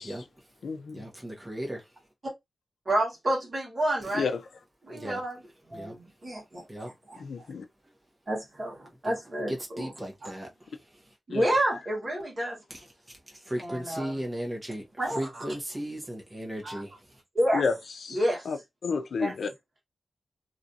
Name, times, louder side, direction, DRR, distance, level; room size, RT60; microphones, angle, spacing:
voice 1, 0.0-0.5 0.9-2.0 4.9-5.2 5.7-6.0 6.6-7.2 7.8-7.9 9.0-9.1 9.5-11.1 12.7-17.2, right 1 dB, 20° right, 1.1 m, -37 dB
voice 2, 0.6-1.0 4.1-4.4 7.2-7.6 11.3-11.5 17.5-17.8 18.0-18.2 18.5-18.6 18.8-19.5, left 5 dB, 85° left, 0.4 m, -30 dB
voice 3, 2.8-4.3 4.8-5.4 5.7-6.6 7.1-7.2 8.3-9.9 10.2-10.3 11.3-12.6 13.6-14.1 15.0-15.5 16.6-16.8 17.3-17.6 18.1-18.5 19.2-19.3, right 1 dB, 40° right, 1.5 m, -29 dB
3.0 x 2.5 x 2.7 m
wide cardioid pair, 105°, 0 cm